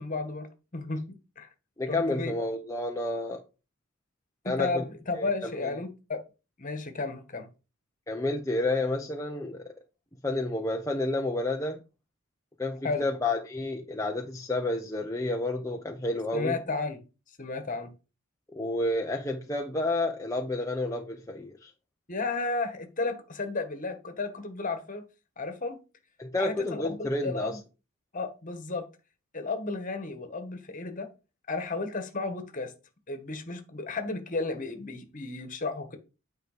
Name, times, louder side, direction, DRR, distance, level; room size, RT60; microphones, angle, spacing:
voice 1, 0.0-1.5 1.9-2.3 4.4-6.2 6.6-7.5 12.8-13.0 16.3-17.0 17.4-17.9 22.1-25.0 25.4-25.8 26.4-27.6 28.1-28.9 29.3-31.1 31.5-32.7 33.1-36.0, left 3 dB, 35° left, 1.5 m, -33 dB
voice 2, 1.8-3.4 4.4-4.8 5.2-5.7 8.1-9.7 10.2-11.8 12.6-16.6 18.5-21.7 26.2-27.6, left 2 dB, 15° left, 0.7 m, -30 dB
9.3 x 4.6 x 5.0 m
head